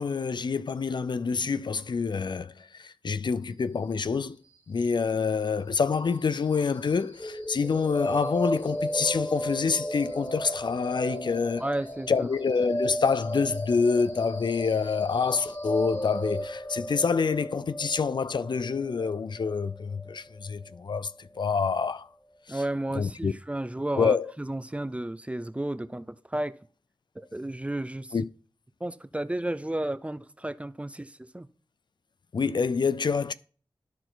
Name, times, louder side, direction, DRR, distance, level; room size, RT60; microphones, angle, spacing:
voice 1, 0.0-4.4 4.7-11.6 12.1-22.1 22.5-22.6 22.9-23.3 23.9-24.3 28.1-28.2 32.3-33.3, left 5 dB, 65° left, 0.5 m, -27 dB
sound 1, 7.2-21.1, equal, 30° left, 2.3 m, -35 dB
voice 2, 11.6-12.3 22.5-26.6 27.3-28.1 28.8-31.5, right 1 dB, 15° right, 0.5 m, -32 dB
12.5 x 4.5 x 3.9 m
wide cardioid pair, 65°, 9 cm